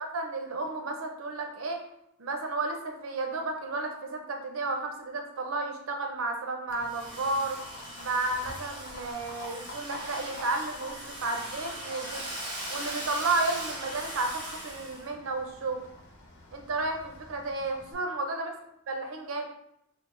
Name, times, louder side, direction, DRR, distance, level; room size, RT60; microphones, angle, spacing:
voice 1, 0.0-1.8 2.2-7.6 8.0-12.3 12.7-15.8 16.5-18.5 18.9-19.4, right 3 dB, 80° right, 4 dB, 0.6 m, -32 dB
Livestock farm animals working animals, 6.7-17.9, left 2 dB, 65° left, 0.9 m, -49 dB
Domestic sounds home sounds, 6.8-15.0, right 1 dB, 25° right, 1.2 m, -40 dB
3.9 x 2.0 x 3.7 m, 0.78 s
head